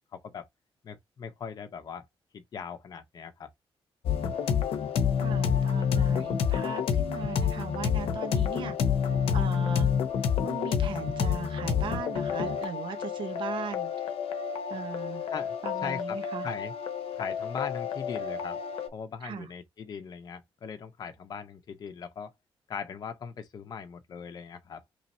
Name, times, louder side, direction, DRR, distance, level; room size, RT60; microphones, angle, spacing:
voice 1, 0.1-0.5 0.8-2.1 2.3-3.5 15.3-15.6 15.8-16.2 16.4-16.7 17.1-18.6 18.9-22.3 22.7-24.8, left 6 dB, 45° left, 0.7 m, -39 dB
sound 1, 4.0-18.9, left 7 dB, 80° left, 0.7 m, -29 dB
voice 2, 5.2-8.8 9.3-9.9 10.4-14.1 14.7-15.3 15.6-16.5 19.2-19.5, right 7 dB, 60° right, 0.9 m, -38 dB
3.1 x 2.8 x 4.1 m
wide cardioid pair, 160°, 10 cm